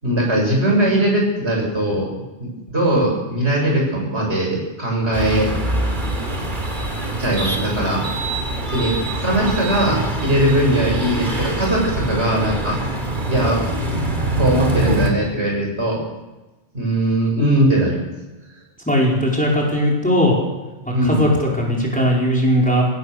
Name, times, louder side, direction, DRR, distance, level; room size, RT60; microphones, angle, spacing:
voice 1, 0.0-2.1 2.4-5.5 7.2-8.0 8.7-12.8 13.3-13.6 14.4-16.0 16.7-18.0 20.9-21.2, right 1 dB, 75° right, -1 dB, 7.7 m, -20 dB
sound 1, 5.1-15.1, right 1 dB, 45° right, 3.2 m, -24 dB
voice 2, 18.8-20.4 21.0-22.9, equal, 5° left, -3 dB, 5.0 m, -18 dB
24.0 x 17.0 x 6.7 m, 1.1 s
omnidirectional pair, 1.1 m